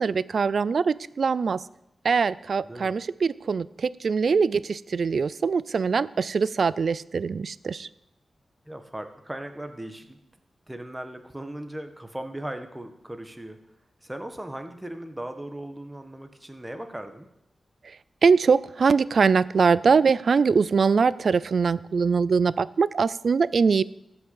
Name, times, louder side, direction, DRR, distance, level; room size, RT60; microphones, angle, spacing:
voice 1, 0.0-1.6 2.0-7.9 18.2-23.8, right 5 dB, 70° right, 19 dB, 0.4 m, -22 dB
voice 2, 2.6-3.0 8.7-10.2 10.7-13.6 14.0-17.3, right 1 dB, 15° right, 7 dB, 1.6 m, -38 dB
14.0 x 6.1 x 7.2 m, 0.85 s
cardioid pair, 50°, 0 cm